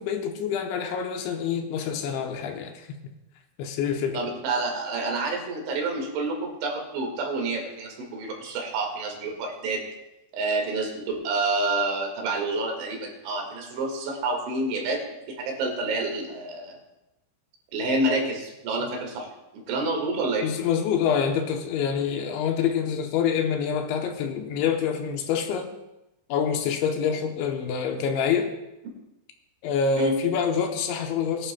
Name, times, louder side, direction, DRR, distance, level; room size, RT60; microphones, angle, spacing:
voice 1, 0.0-2.9 3.6-4.3 20.4-25.7 26.3-28.5 29.6-31.5, left 7 dB, 80° left, 4 dB, 3.0 m, -26 dB
voice 2, 4.1-9.8 10.3-15.0 15.3-16.8 17.7-19.3 19.5-20.5 30.0-30.1, right 2 dB, 75° right, 1 dB, 4.2 m, -28 dB
21.0 x 11.5 x 2.2 m, 0.94 s
omnidirectional pair, 5.5 m